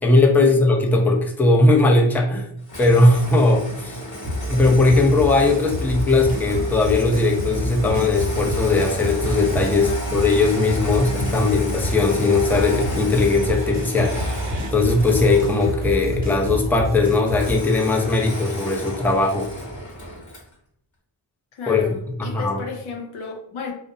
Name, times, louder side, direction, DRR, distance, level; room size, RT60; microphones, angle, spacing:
voice 1, 0.0-2.5 2.8-4.0 4.5-14.1 14.7-19.5 21.7-21.9 22.2-22.6, left 3 dB, 5° left, 0 dB, 0.4 m, -19 dB
Engine starting, 2.7-16.1 17.3-20.5, left 1 dB, 40° left, 1.0 m, -33 dB
sound 1, 4.2-17.5, equal, 20° right, 1.0 m, -28 dB
sound 2, 6.3-15.5, right 3 dB, 65° right, 0.5 m, -40 dB
voice 2, 21.5-23.7, left 3 dB, 90° left, 3 dB, 0.6 m, -32 dB
2.6 x 2.0 x 2.5 m, 0.73 s
cardioid pair, 60°, 47 cm